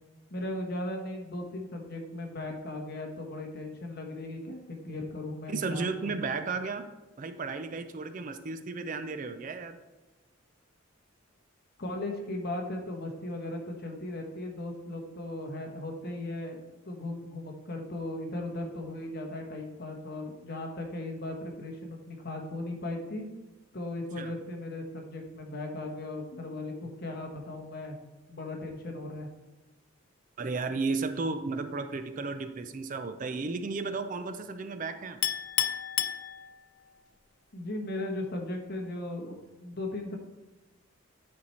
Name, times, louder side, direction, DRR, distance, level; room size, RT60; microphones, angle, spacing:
voice 1, 0.3-6.1 11.8-23.2 23.7-28.0 28.3-29.3 37.5-40.2, left 1 dB, 50° left, 2 dB, 1.2 m, -37 dB
voice 2, 5.5-6.9 7.2-9.8 24.2-24.3 30.4-35.2, right 4 dB, 40° right, 9 dB, 0.4 m, -34 dB
Chink clink, 35.2-36.9, left 11 dB, 85° left, 0.5 m, -31 dB
9.9 x 4.5 x 4.2 m, 1.1 s
head